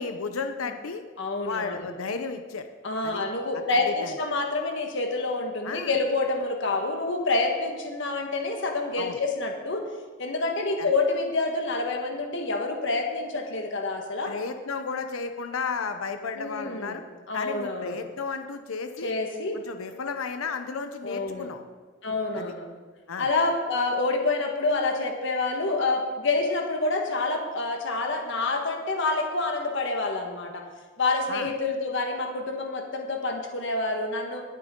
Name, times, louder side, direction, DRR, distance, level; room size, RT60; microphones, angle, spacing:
voice 1, 0.0-1.0 1.4-2.7 3.0-3.2 3.7-4.1 5.6-5.9 9.0-9.2 10.8-10.9 14.3-17.0 17.3-19.1 19.5-21.6 22.3-22.5 23.1-23.3 31.3-31.5, left 5 dB, 85° left, 7 dB, 0.7 m, -33 dB
voice 2, 1.2-1.9 2.8-9.8 10.2-14.3 16.3-17.0 17.3-18.0 19.0-19.6 21.0-21.5 22.0-22.7 23.2-30.6 31.0-34.4, left 3 dB, 60° left, 2 dB, 1.5 m, -27 dB
20.5 x 7.5 x 3.8 m, 1.3 s
head